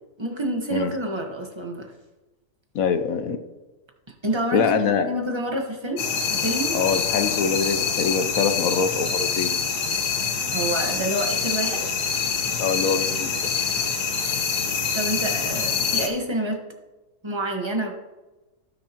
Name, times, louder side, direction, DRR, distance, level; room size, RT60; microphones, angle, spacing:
voice 1, 0.2-1.9 4.2-4.7 5.0-6.0 6.3-6.8 10.4-11.9 14.9-16.6 17.2-17.9, right 1 dB, 20° right, 2 dB, 1.3 m, -28 dB
voice 2, 2.7-3.4 4.5-5.1 6.7-9.5 12.6-13.5, left 6 dB, 65° left, 8 dB, 1.2 m, -24 dB
sound 1, 6.0-16.1, left 6 dB, 85° left, 1.8 m, -25 dB
17.5 x 6.5 x 3.0 m, 1.1 s
omnidirectional pair, 1.7 m